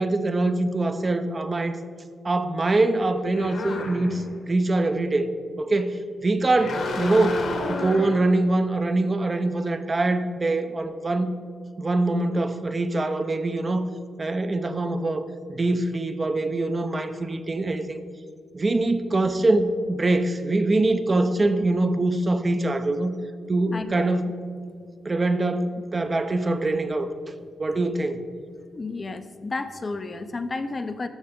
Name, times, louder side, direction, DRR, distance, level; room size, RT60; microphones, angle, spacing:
voice 1, 0.0-1.8 2.2-5.3 5.6-11.3 11.8-13.9 14.2-18.0 18.5-23.2 23.5-24.3 25.0-27.1 27.6-28.2, right 2 dB, 30° right, 9 dB, 0.6 m, -24 dB
sound 1, 3.3-4.3 6.5-8.2, left 3 dB, 75° left, 1.7 m, -31 dB
voice 2, 23.7-24.1 28.7-31.1, left 3 dB, 30° left, 9 dB, 0.5 m, -32 dB
13.5 x 6.4 x 3.6 m, 2.2 s
cardioid pair, 105°, 0 cm